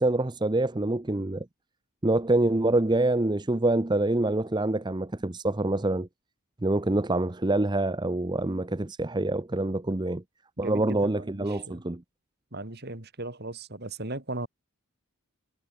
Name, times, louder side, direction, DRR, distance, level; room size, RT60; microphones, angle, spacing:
voice 1, 0.0-1.5 2.0-6.1 6.6-10.2 10.6-12.0, right 2 dB, 20° right, 0.7 m, -26 dB
voice 2, 10.6-11.8 12.5-14.5, right 2 dB, 50° right, 3.1 m, -37 dB
head